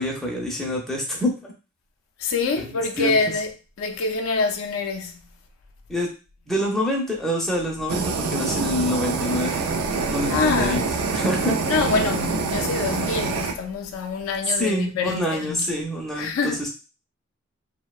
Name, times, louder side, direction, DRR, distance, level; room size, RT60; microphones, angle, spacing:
voice 1, 0.0-1.5 2.6-3.2 5.9-6.1 6.5-9.6 10.1-10.8 11.1-11.6 14.5-16.7, left 1 dB, ahead, 0.4 m, -26 dB
voice 2, 2.2-3.5 3.8-5.2 10.3-10.9 11.7-15.7 16.2-16.6, left 4 dB, 70° left, 0.4 m, -25 dB
Fire, 7.9-13.5, right 4 dB, 80° right, 0.4 m, -25 dB
2.6 x 2.1 x 2.3 m
head